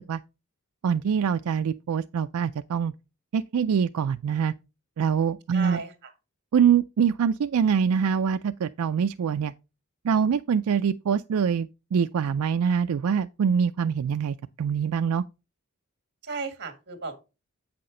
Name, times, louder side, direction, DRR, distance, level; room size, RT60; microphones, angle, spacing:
voice 1, 0.8-2.9 3.3-4.5 5.0-5.8 6.5-9.5 10.0-15.2, right 7 dB, 85° right, 0.4 m, -24 dB
voice 2, 5.5-6.1 16.2-17.2, right 4 dB, 55° right, 1.7 m, -35 dB
8.4 x 5.9 x 3.8 m
head